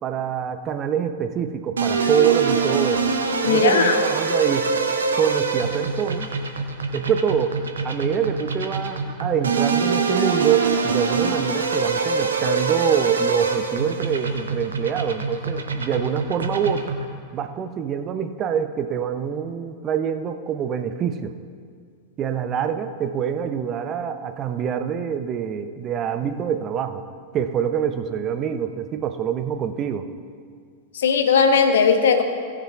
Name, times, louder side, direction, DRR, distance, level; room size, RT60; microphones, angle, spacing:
voice 1, 0.0-3.1 3.4-4.8 5.2-6.3 6.9-7.6 7.8-16.9 17.3-21.3 22.2-27.0 27.3-30.1, right 8 dB, 30° right, 9 dB, 0.6 m, -25 dB
sound 1, 1.8-17.1, right 4 dB, 70° right, 0.9 m, -25 dB
voice 2, 3.4-4.0 30.9-32.2, left 6 dB, 65° left, 7 dB, 0.9 m, -17 dB
17.5 x 9.8 x 2.4 m, 2.1 s
figure-of-eight pair, 90°, 0 cm